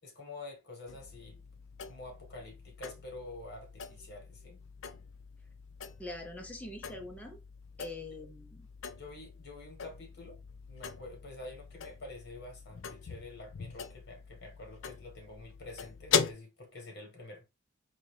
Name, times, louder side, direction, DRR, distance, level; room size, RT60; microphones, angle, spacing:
voice 1, 0.0-1.4 1.8-4.6 9.0-10.4 10.7-17.5, left 2 dB, 55° left, 1.5 m, -48 dB
sound 1, 0.9-16.3, left 7 dB, 75° left, 0.4 m, -40 dB
voice 2, 6.0-7.4 7.8-8.7, left 2 dB, 10° left, 0.6 m, -43 dB
4.0 x 2.7 x 3.2 m
head